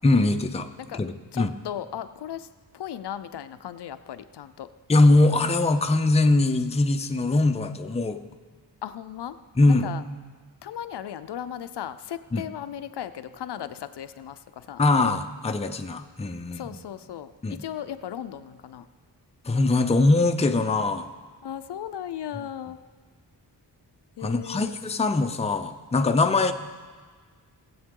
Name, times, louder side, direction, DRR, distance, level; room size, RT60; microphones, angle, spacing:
voice 1, 0.0-0.7 0.9-1.5 4.9-8.2 9.6-9.9 12.3-12.4 14.8-16.7 17.4-17.6 19.5-21.1 24.2-26.5, left 2 dB, 15° left, 6 dB, 0.5 m, -22 dB
voice 2, 1.3-2.5 2.7-4.7 8.8-9.4 9.7-10.0 10.6-14.8 16.5-18.9 21.4-22.8 24.2-24.8 26.2-26.3, left 10 dB, 70° left, 11 dB, 0.5 m, -36 dB
19.0 x 7.8 x 3.7 m, 1.5 s
wide cardioid pair, 130°, 42 cm